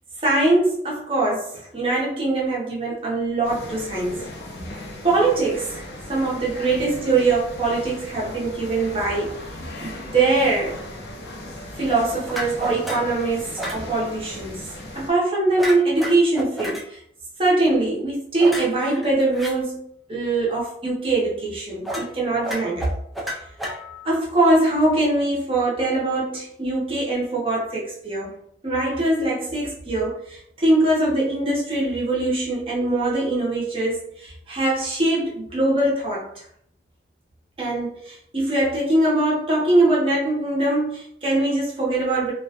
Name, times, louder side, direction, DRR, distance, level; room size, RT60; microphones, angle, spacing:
voice 1, 0.2-4.3 5.0-9.4 9.8-10.8 11.8-14.7 14.9-17.0 17.4-19.8 20.1-22.9 24.0-28.3 28.6-36.3 37.6-42.3, right 2 dB, 30° right, -5 dB, 0.7 m, -22 dB
sound 1, 3.4-15.1, left 1 dB, 70° left, 0.6 m, -37 dB
Combo shovels, 12.3-13.1 13.6-13.8 15.6-16.8 18.4-19.5 21.8-22.1 22.4-24.1, equal, ahead, 0.3 m, -31 dB
2.3 x 2.2 x 2.7 m, 0.70 s
head